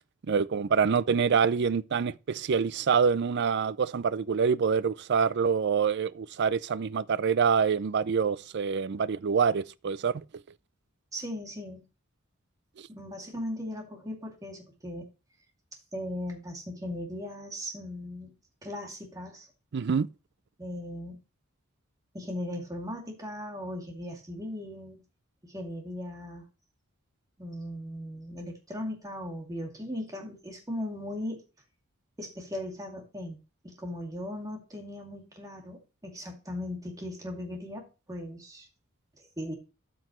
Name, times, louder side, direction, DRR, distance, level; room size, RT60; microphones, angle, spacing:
voice 1, 0.3-10.2 19.7-20.1, right 6 dB, 55° right, 0.4 m, -26 dB
voice 2, 11.1-11.8 12.9-15.1 15.9-18.3 18.6-19.5 20.6-21.2 22.1-25.0 25.4-26.4 27.4-31.4 32.2-38.7 39.4-39.5, left 1 dB, 15° right, 2.5 m, -38 dB
13.0 x 6.2 x 3.1 m
head